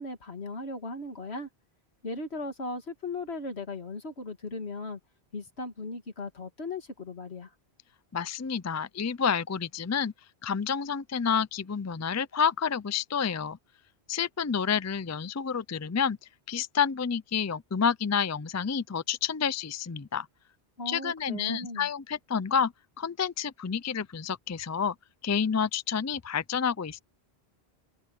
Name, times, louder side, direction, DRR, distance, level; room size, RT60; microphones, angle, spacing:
voice 1, 0.0-1.5 2.0-5.0 5.3-7.5 20.8-21.9, left 2 dB, 75° left, 2.5 m, -37 dB
voice 2, 8.1-10.1 10.4-13.6 14.1-16.2 16.5-20.3 20.9-22.7 23.0-25.0 25.2-27.0, left 7 dB, 25° left, 0.3 m, -29 dB
omnidirectional pair, 1.1 m